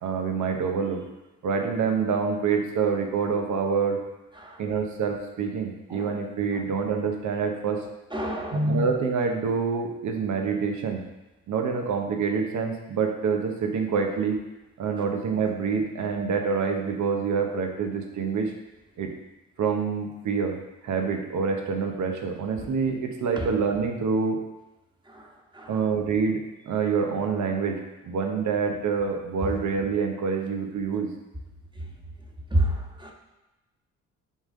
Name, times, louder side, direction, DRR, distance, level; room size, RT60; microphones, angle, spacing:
voice 1, 0.0-1.0 1.4-4.0 4.6-7.9 8.5-11.0 11.5-14.4 14.8-18.5 19.0-19.1 19.6-20.6 20.8-24.4 25.7-31.1, right 5 dB, 65° right, 3 dB, 1.1 m, -26 dB
voice 2, 8.1-8.7 22.6-22.7 23.4-23.5 25.1-25.3 25.5-25.8 29.4-29.6 32.5-33.1, right 1 dB, 15° right, 1 dB, 1.4 m, -29 dB
10.5 x 3.7 x 3.8 m, 1.0 s
supercardioid pair, 70°, 32 cm